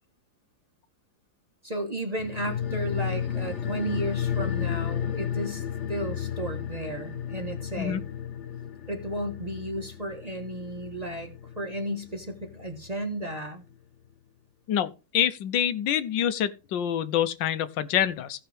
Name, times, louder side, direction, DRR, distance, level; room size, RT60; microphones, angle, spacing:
voice 1, 1.6-8.0 8.9-13.6, right 1 dB, 25° right, 1.2 m, -34 dB
sound 1, 2.2-13.0 13.3-13.4, left 9 dB, 55° left, 0.8 m, -33 dB
voice 2, 14.7-18.4, left 10 dB, 80° left, 1.4 m, -26 dB
16.0 x 5.7 x 3.4 m
omnidirectional pair, 2.0 m